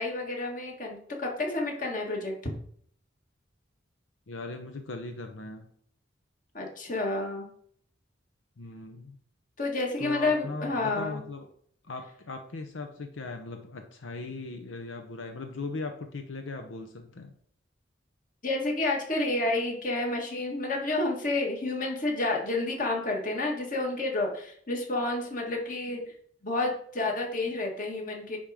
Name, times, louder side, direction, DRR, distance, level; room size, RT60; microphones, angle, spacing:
voice 1, 0.0-2.5 6.5-7.5 9.6-11.2 18.4-26.1 26.4-28.4, left 2 dB, 45° left, 0 dB, 1.8 m, -30 dB
voice 2, 4.3-5.7 8.6-9.2 10.0-11.5 11.8-17.3, left 3 dB, 85° left, 6 dB, 0.7 m, -39 dB
10.5 x 3.6 x 5.0 m, 0.62 s
head